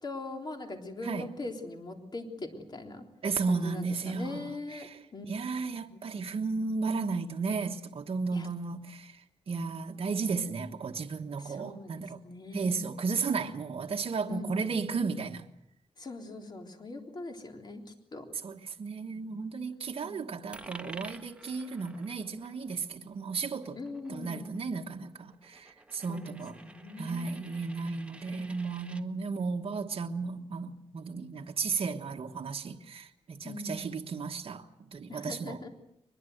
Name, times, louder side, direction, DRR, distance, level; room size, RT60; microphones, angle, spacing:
voice 1, 0.0-3.0 3.5-5.3 5.9-6.0 8.3-8.5 11.4-12.8 14.3-14.7 16.0-17.8 18.1-18.3 20.0-20.2 21.4-21.5 23.8-24.6 26.1-27.4 28.3-28.5 33.4-33.8 35.1-35.7, left 2 dB, 40° left, 3.6 m, -41 dB
voice 2, 3.2-12.2 12.5-15.5 18.4-23.8 24.1-26.6 27.0-35.7, right 4 dB, 60° right, 1.4 m, -34 dB
Coin (dropping), 20.5-29.0, right 2 dB, 10° right, 1.4 m, -51 dB
23.0 x 21.5 x 8.0 m
wide cardioid pair, 115°, 11 cm